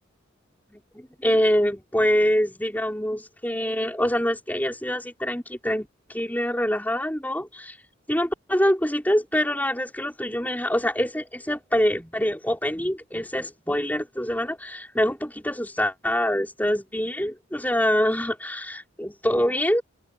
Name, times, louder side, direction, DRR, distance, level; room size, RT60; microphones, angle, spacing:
voice 1, 0.7-7.8 8.1-19.8, equal, 10° left, 5.9 m, -25 dB
head